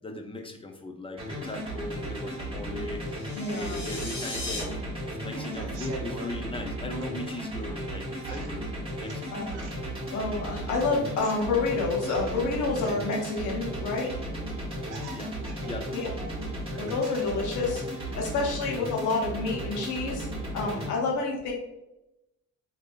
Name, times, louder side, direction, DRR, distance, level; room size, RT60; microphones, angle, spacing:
voice 1, 0.0-9.4 15.1-15.3 15.6-16.1 17.0-17.1 17.7-17.8, left 2 dB, 20° left, 4 dB, 0.5 m, -39 dB
sound 1, 1.2-20.9, right 1 dB, 20° right, 1.2 m, -35 dB
sound 2, 3.0-4.6, left 2 dB, 40° left, 1.3 m, -37 dB
voice 2, 3.3-3.8 9.3-9.6 10.1-14.1 15.9-16.3 16.8-20.3 20.5-21.5, left 3 dB, 90° left, -1 dB, 1.0 m, -29 dB
sound 3, 5.3-6.3 6.9-7.8 8.2-10.0 11.0-13.3 14.2-14.3 14.5-17.4 17.8-18.4, right 3 dB, 90° right, 0.7 m, -45 dB
3.4 x 2.7 x 2.5 m, 0.93 s
cardioid pair, 90°, 30 cm